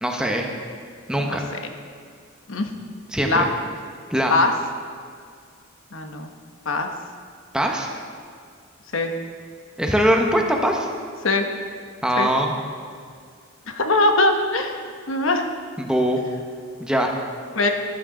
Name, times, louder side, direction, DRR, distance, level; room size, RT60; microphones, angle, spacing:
voice 1, 0.0-0.5 1.1-1.5 3.1-3.4 4.1-4.3 7.5-7.9 9.8-10.9 12.0-12.5 15.8-16.2 16.8-17.1, equal, 5° right, 1 dB, 0.9 m, -21 dB
voice 2, 5.9-6.3 6.6-6.9 8.9-9.1 11.2-11.4 12.2-12.3 13.7-15.5 17.6-17.7, left 2 dB, 75° left, 4 dB, 1.0 m, -21 dB
13.5 x 11.0 x 3.8 m, 2.1 s
head